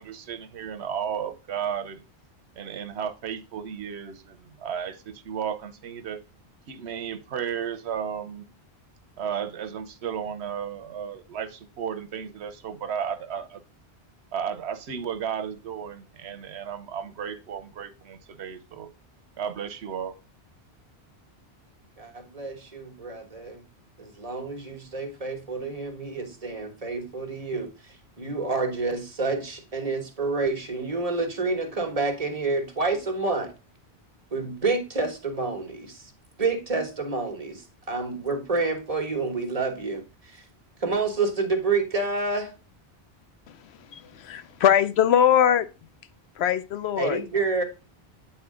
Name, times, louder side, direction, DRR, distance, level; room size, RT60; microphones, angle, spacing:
voice 1, 0.0-2.0 2.6-6.2 6.7-8.5 9.2-13.6 14.3-18.9 19.4-20.2, right 8 dB, 85° right, 1.0 m, -33 dB
voice 2, 22.0-23.6 24.0-27.7 28.2-33.5 34.3-36.1 36.4-37.6 37.9-40.4 40.8-42.5 47.0-47.6, right 3 dB, 35° right, 1.3 m, -28 dB
voice 3, 43.9-45.7 46.4-47.2, left 9 dB, 80° left, 0.9 m, -21 dB
8.5 x 4.3 x 3.6 m
omnidirectional pair, 1.1 m